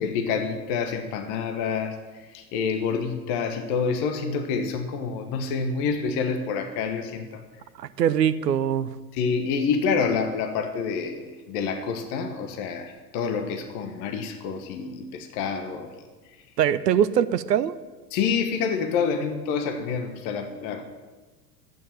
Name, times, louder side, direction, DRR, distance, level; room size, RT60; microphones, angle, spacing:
voice 1, 0.0-7.4 9.1-16.0 18.1-20.9, left 5 dB, 45° left, 6 dB, 1.5 m, -28 dB
voice 2, 7.8-8.9 16.6-17.8, right 9 dB, 75° right, 15 dB, 0.7 m, -22 dB
12.5 x 9.3 x 7.7 m, 1.3 s
figure-of-eight pair, 85°, 49 cm